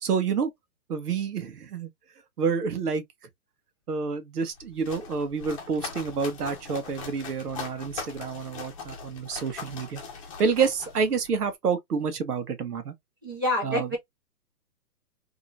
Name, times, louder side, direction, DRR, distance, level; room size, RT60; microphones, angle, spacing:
voice 1, 0.0-0.5 0.9-1.9 2.4-3.0 3.9-10.0 10.4-12.9 13.6-14.0, right 5 dB, 75° right, 1.4 m, -28 dB
sound 1, 4.5-11.5, left 5 dB, 20° left, 0.9 m, -41 dB
voice 2, 13.2-14.0, left 1 dB, 15° right, 0.6 m, -27 dB
3.7 x 3.0 x 2.6 m
hypercardioid pair, 165°, 47 cm